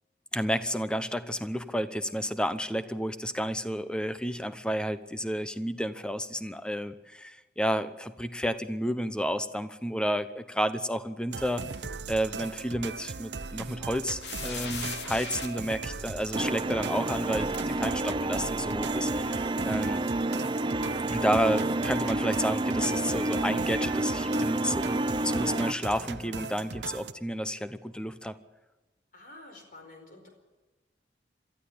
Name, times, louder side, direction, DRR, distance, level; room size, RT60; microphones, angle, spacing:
voice 1, 0.3-11.6 12.1-20.1 21.1-28.4, equal, 5° left, 11 dB, 0.9 m, -31 dB
sound 1, 11.3-27.1, right 4 dB, 85° right, 0.9 m, -39 dB
sound 2, 14.2-15.5 16.3-16.4 17.5-17.6, left 5 dB, 80° left, 3.0 m, -37 dB
sound 3, 16.3-25.7, right 2 dB, 25° right, 0.6 m, -29 dB
voice 2, 29.1-30.3, left 2 dB, 50° left, 4 dB, 4.9 m, -49 dB
22.5 x 13.5 x 8.7 m, 1.2 s
head